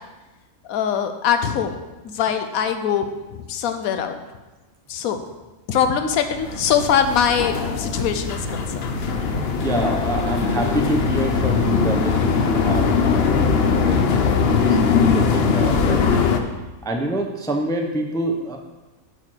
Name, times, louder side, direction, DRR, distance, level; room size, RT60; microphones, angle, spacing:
voice 1, 0.7-1.8 2.0-4.1 4.9-5.2 5.7-9.0, left 8 dB, 80° left, 8 dB, 1.1 m, -22 dB
sound 1, 6.3-13.4, right 4 dB, 90° right, 1.2 m, -37 dB
sound 2, 6.4-16.4, left 5 dB, 55° left, 0.8 m, -20 dB
voice 2, 9.6-14.1 14.7-16.1 16.8-18.6, right 1 dB, 5° left, 2 dB, 0.4 m, -26 dB
7.9 x 4.7 x 6.2 m, 1.1 s
omnidirectional pair, 1.5 m